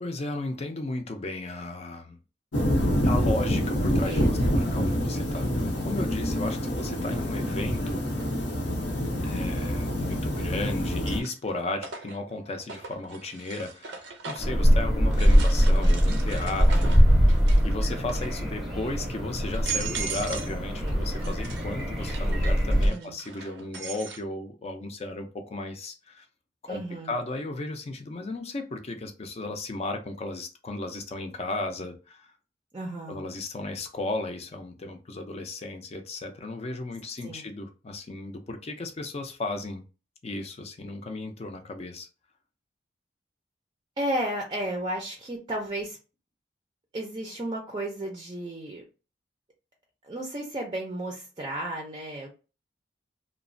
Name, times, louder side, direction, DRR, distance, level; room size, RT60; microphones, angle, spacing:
voice 1, 0.0-2.2 3.0-8.1 9.2-17.0 17.6-26.3 26.6-32.3 33.1-39.8 40.2-42.1, left 2 dB, 35° left, 0.5 m, -35 dB
sound 1, 2.5-11.2, equal, 85° left, 0.7 m, -26 dB
voice 2, 4.1-4.6 22.9-23.2 26.7-27.2 32.7-33.2 37.2-37.5 44.0-46.0 46.9-48.8 50.0-52.3, right 1 dB, 25° right, 0.5 m, -33 dB
sound 2, 8.2-8.3 10.0-10.4 10.8-14.6 15.1-17.7 18.0-18.5 19.1-19.2 19.5-20.6 20.9-24.2, right 6 dB, 80° right, 0.5 m, -39 dB
sound 3, 14.4-22.9, equal, ahead, 0.8 m, -22 dB
2.9 x 2.1 x 2.5 m
head